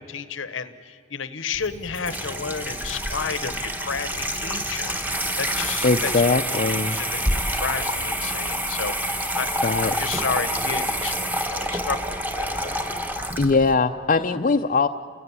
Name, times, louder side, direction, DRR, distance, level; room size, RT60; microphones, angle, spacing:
voice 1, 0.0-12.7, left 5 dB, 80° left, 12 dB, 1.0 m, -32 dB
Water tap faucet / Sink (filling or washing), 1.5-13.7, equal, 10° right, 1.3 m, -27 dB
voice 2, 5.8-7.0 9.6-9.9 13.4-14.9, left 4 dB, 40° left, 5 dB, 0.6 m, -21 dB
29.0 x 16.5 x 9.7 m, 2.4 s
head